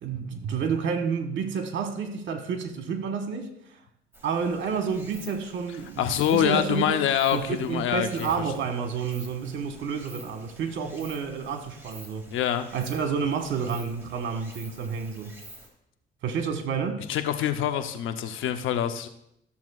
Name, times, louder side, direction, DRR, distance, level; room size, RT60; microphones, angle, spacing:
voice 1, 0.0-3.8 4.2-7.0 7.3-12.2 12.7-15.3 16.2-17.0, right 6 dB, 70° right, 1.3 m, -30 dB
Stream, 4.1-15.7, right 1 dB, 10° right, 2.4 m, -49 dB
voice 2, 6.0-8.3 12.3-12.7 17.1-19.1, left 10 dB, 85° left, 0.7 m, -25 dB
14.0 x 7.1 x 2.4 m
cardioid pair, 90°, 20 cm